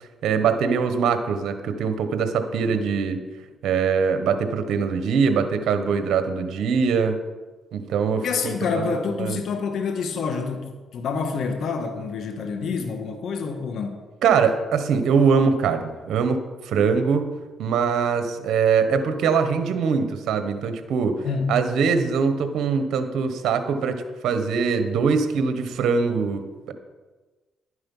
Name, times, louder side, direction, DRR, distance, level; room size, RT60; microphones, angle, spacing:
voice 1, 0.2-3.2 3.6-7.2 7.7-8.3 8.7-8.8 9.2-9.4 14.2-17.3 17.6-21.2 21.5-23.9 24.2-26.7, right 6 dB, 75° right, 8 dB, 1.2 m, -22 dB
voice 2, 8.2-14.0 21.2-21.5, left 5 dB, 70° left, 4 dB, 1.5 m, -27 dB
11.0 x 9.8 x 5.6 m, 1.3 s
cardioid pair, 90°, 0 cm